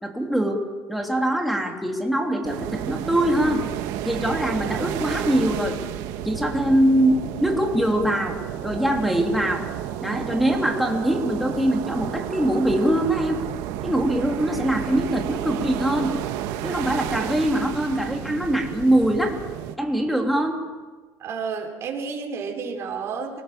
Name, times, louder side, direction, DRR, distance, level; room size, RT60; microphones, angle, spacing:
voice 1, 0.0-3.6 4.0-5.8 6.2-8.4 8.6-9.7 10.0-13.4 13.8-16.2 16.6-19.4 19.8-20.6, right 1 dB, ahead, 1 dB, 3.2 m, -23 dB
sound 1, 2.4-19.8, right 12 dB, 80° right, 1.5 m, -31 dB
voice 2, 21.2-23.4, right 5 dB, 45° right, 2 dB, 4.6 m, -31 dB
25.5 x 18.5 x 7.6 m, 1.3 s
cardioid pair, 135°, 6 cm